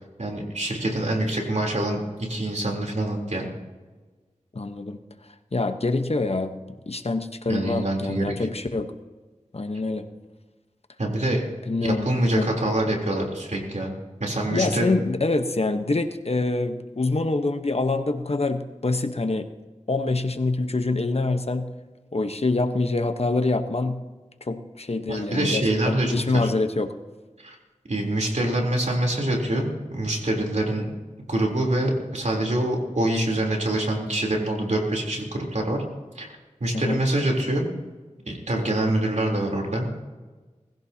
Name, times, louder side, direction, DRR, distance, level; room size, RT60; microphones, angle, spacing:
voice 1, 0.2-3.5 7.5-8.3 11.0-11.4 11.8-13.9 14.2-14.9 25.1-26.5 27.4-27.6 27.9-30.9 31.3-35.8 36.2-36.3 36.6-37.7 38.3-39.9, right 1 dB, 65° right, 0 dB, 3.6 m, -25 dB
voice 2, 4.5-5.0 5.5-6.5 6.9-8.9 9.5-10.1 11.7-12.5 14.5-19.5 19.9-21.7 22.1-24.0 24.4-26.9 36.7-37.0, left 3 dB, 55° left, 8 dB, 1.1 m, -25 dB
20.0 x 16.0 x 2.9 m, 1.3 s
wide cardioid pair, 45°, 13 cm